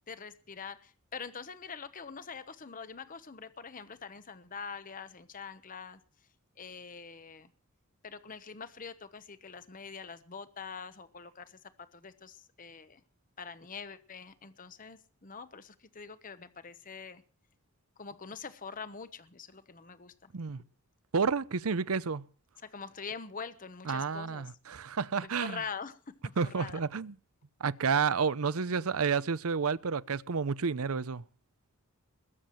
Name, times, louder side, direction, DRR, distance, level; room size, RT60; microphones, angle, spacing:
voice 1, 0.1-6.0 6.6-7.5 8.0-13.0 13.4-17.2 18.0-20.3 22.6-24.5 25.2-26.8, left 5 dB, 35° left, 0.9 m, -44 dB
voice 2, 21.1-22.3 23.9-25.6 26.4-27.1 27.6-31.2, right 5 dB, 70° right, 0.7 m, -30 dB
21.5 x 7.5 x 7.7 m
head